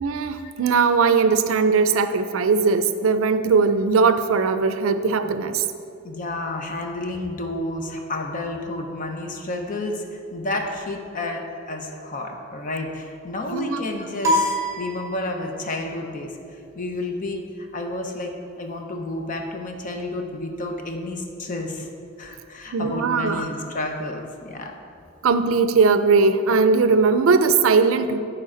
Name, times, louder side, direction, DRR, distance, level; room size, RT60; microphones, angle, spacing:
voice 1, 0.0-5.6 13.5-13.8 22.7-23.5 25.2-28.2, right 4 dB, 85° right, 10 dB, 0.4 m, -19 dB
voice 2, 6.0-16.3 16.8-21.9 22.2-24.7, left 2 dB, 40° left, 3 dB, 0.7 m, -30 dB
sound 1, 14.2-15.7, equal, 15° right, 1.1 m, -24 dB
10.5 x 4.4 x 3.8 m, 2.5 s
head